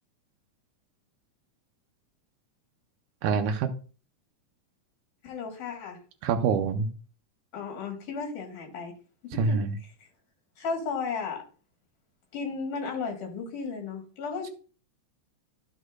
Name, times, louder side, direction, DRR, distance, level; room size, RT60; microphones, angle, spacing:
voice 1, 3.2-3.7 6.2-6.9 9.4-9.7, right 5 dB, 85° right, 3 dB, 2.1 m, -25 dB
voice 2, 5.2-6.0 7.5-8.9 9.3-9.6 10.6-11.4 12.3-14.5, left 5 dB, 80° left, 1 dB, 3.3 m, -34 dB
12.0 x 6.4 x 2.5 m, 0.37 s
omnidirectional pair, 3.6 m